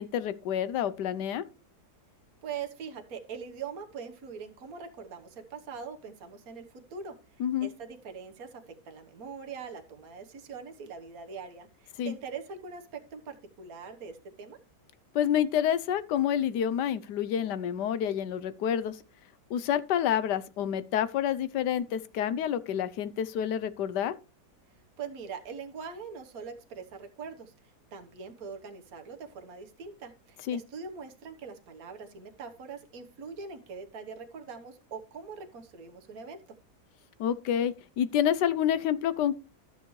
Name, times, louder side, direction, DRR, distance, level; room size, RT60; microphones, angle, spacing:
voice 1, 0.0-1.4 7.4-7.7 12.0-12.1 15.1-19.0 19.5-24.1 30.5-30.6 37.2-39.3, left 9 dB, 85° left, 1.3 m, -28 dB
voice 2, 2.4-7.1 7.6-14.6 25.0-27.5 27.9-36.4, right 6 dB, 60° right, 1.6 m, -42 dB
13.0 x 7.1 x 3.1 m
omnidirectional pair, 1.8 m